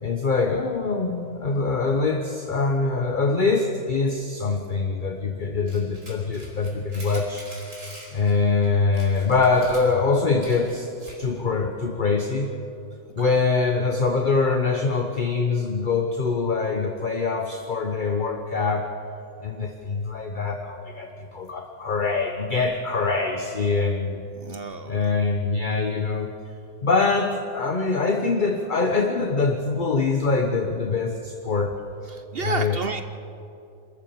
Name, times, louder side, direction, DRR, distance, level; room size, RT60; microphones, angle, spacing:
voice 1, 0.0-7.5 8.1-10.9 11.2-12.5 13.1-18.9 19.4-24.2 24.9-26.3 26.8-31.7 32.4-32.8, left 4 dB, 35° left, 3 dB, 1.0 m, -24 dB
sound 1, 5.7-8.3 8.6-8.7 8.9-11.3, right 1 dB, 40° right, 4.9 m, -44 dB
voice 2, 24.3-25.1 32.1-33.0, right 4 dB, 70° right, 9 dB, 0.5 m, -31 dB
26.5 x 14.0 x 7.1 m, 2.6 s
omnidirectional pair, 2.0 m